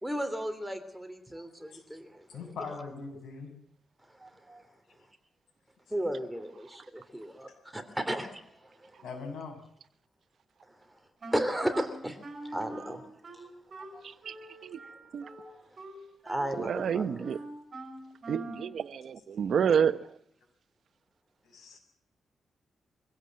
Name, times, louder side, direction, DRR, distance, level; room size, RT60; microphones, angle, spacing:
voice 1, 0.0-2.5 4.0-4.7 5.9-9.0 10.7-13.1 13.3-13.5 13.8-15.8 16.2-17.1, equal, 5° right, 3.2 m, -36 dB
voice 2, 2.3-3.5 9.0-9.6 21.4-21.8, left 4 dB, 85° left, 7.4 m, -41 dB
Wind instrument woodwind instrument, 11.2-18.8, right 1 dB, 45° right, 5.9 m, -44 dB
voice 3, 14.0-14.3 14.6-14.8 15.1-15.3 16.6-17.4 18.3-20.1, right 7 dB, 65° right, 1.0 m, -29 dB
24.5 x 16.5 x 7.7 m
cardioid pair, 115°, 0 cm